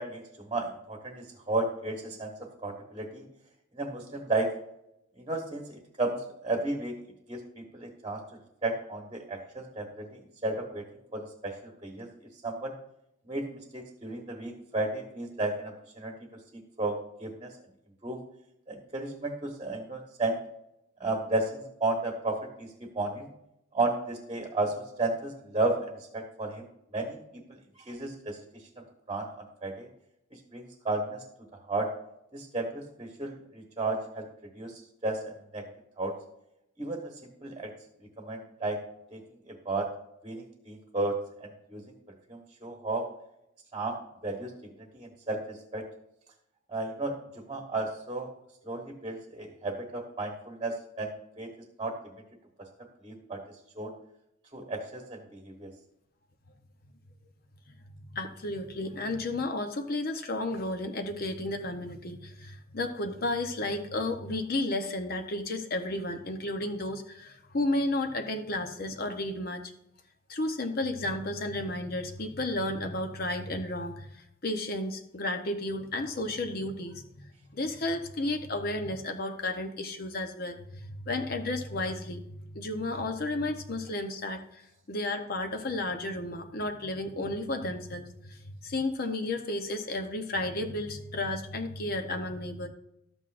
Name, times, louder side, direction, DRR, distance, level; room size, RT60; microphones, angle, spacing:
voice 1, 0.0-3.2 3.7-4.5 5.2-6.2 6.4-7.0 7.3-8.2 8.6-10.9 11.1-12.1 12.4-12.7 13.3-16.1 16.8-17.5 18.0-18.2 18.7-20.4 21.0-22.7 22.9-23.3 23.7-27.2 27.9-28.6 29.1-29.9 30.5-31.2 31.7-31.9 32.3-35.7 36.0-36.1 36.8-37.7 38.2-38.8 39.1-39.2 39.5-39.9 40.2-41.1 41.4-41.8 42.3-43.1 43.7-44.0 44.2-45.9 46.7-48.3 48.6-51.5 51.8-52.1 52.6-52.7 53.0-53.4 53.8-53.9 54.5-55.7, right 2 dB, 25° right, 2 dB, 1.1 m, -33 dB
voice 2, 58.1-69.6 70.3-84.6 84.9-92.7, left 2 dB, 50° left, 5 dB, 0.8 m, -33 dB
12.5 x 8.0 x 2.5 m, 0.80 s
head